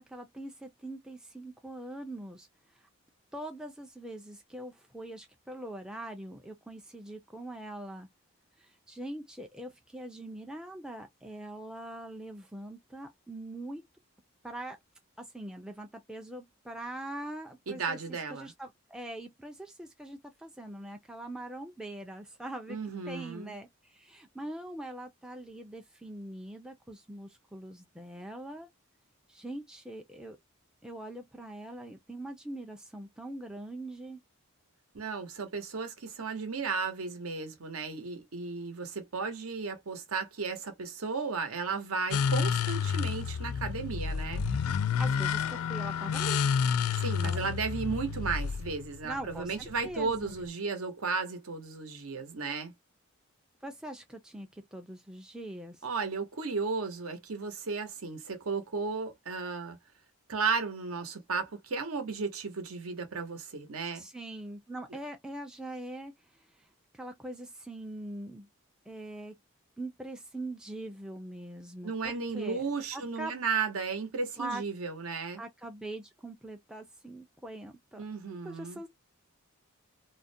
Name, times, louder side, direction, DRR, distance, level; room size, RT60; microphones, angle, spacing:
voice 1, 0.0-2.5 2.8-2.9 3.3-8.1 8.6-13.8 14.4-14.8 15.2-18.0 18.3-28.7 29.3-30.4 30.8-34.2 45.0-46.4 47.0-47.5 49.0-50.3 53.6-55.8 64.0-66.1 66.6-66.7 66.9-68.5 68.9-69.3 69.8-72.7 72.9-73.3 74.4-74.6 75.4-78.0 78.4-78.9, right 1 dB, 5° right, 0.3 m, -42 dB
voice 2, 17.7-18.5 22.7-23.5 34.9-44.4 47.0-52.7 55.8-59.8 60.3-64.0 71.8-75.4 78.0-78.8, right 4 dB, 80° right, 0.8 m, -34 dB
sound 1, 42.1-50.5, left 6 dB, 85° left, 0.4 m, -30 dB
2.4 x 2.1 x 2.6 m
head